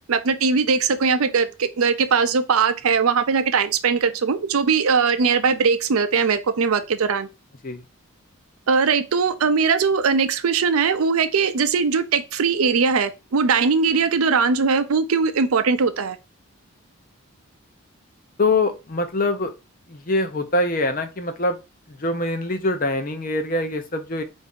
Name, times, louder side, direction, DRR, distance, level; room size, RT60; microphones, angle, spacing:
voice 1, 0.1-7.3 8.7-16.2, right 5 dB, 80° right, 0.5 m, -20 dB
voice 2, 18.4-19.5 19.9-21.6 21.9-24.2, left 2 dB, 40° left, 0.6 m, -24 dB
4.7 x 2.6 x 3.6 m
head